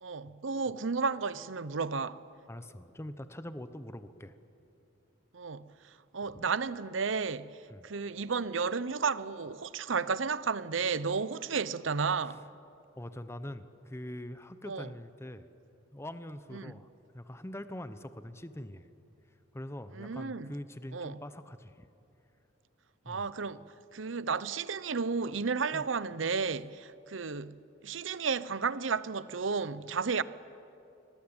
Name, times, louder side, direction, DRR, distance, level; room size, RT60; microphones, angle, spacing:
voice 1, 0.0-2.2 5.3-5.7 6.1-7.5 7.8-12.4 14.7-14.9 16.5-16.7 19.9-20.5 20.9-21.2 23.1-23.6 23.9-27.6 27.8-30.2, right 5 dB, 90° right, 0.8 m, -32 dB
voice 2, 2.5-4.3 6.3-6.4 7.7-7.9 12.3-12.4 13.0-15.5 15.9-16.9 17.1-18.9 19.5-21.9 23.0-23.3 25.7-25.8, left 1 dB, 15° left, 0.9 m, -43 dB
28.0 x 22.0 x 8.9 m
head